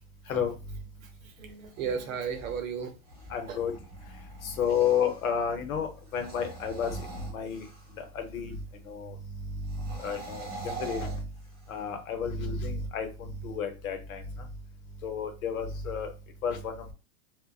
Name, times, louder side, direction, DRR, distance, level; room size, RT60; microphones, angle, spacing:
voice 1, 1.0-2.9 3.5-3.6, right 6 dB, 70° right, 6 dB, 0.7 m, -35 dB
sound 1, 1.5-5.3 6.0-8.1 9.6-11.9, right 3 dB, 15° right, 0.7 m, -44 dB
voice 2, 3.3-3.7 4.4-7.0 7.3-7.6 8.0-8.6 8.9-9.1 9.4-11.2 11.7-14.2 15.0-16.1 16.4-16.7, left 6 dB, 80° left, 6 dB, 0.8 m, -31 dB
2.5 x 2.2 x 2.3 m, 0.31 s
supercardioid pair, 180°, 41 cm